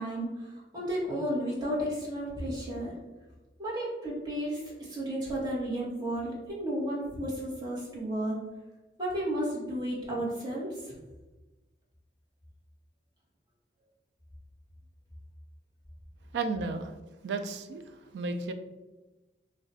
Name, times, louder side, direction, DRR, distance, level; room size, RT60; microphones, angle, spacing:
voice 1, 0.0-2.9 3.6-8.4 9.0-10.9, right 1 dB, 25° right, -6 dB, 0.9 m, -33 dB
voice 2, 16.3-16.9 17.2-17.8 18.1-18.5, right 3 dB, 75° right, 8 dB, 0.3 m, -32 dB
2.4 x 2.1 x 3.8 m, 1.1 s
head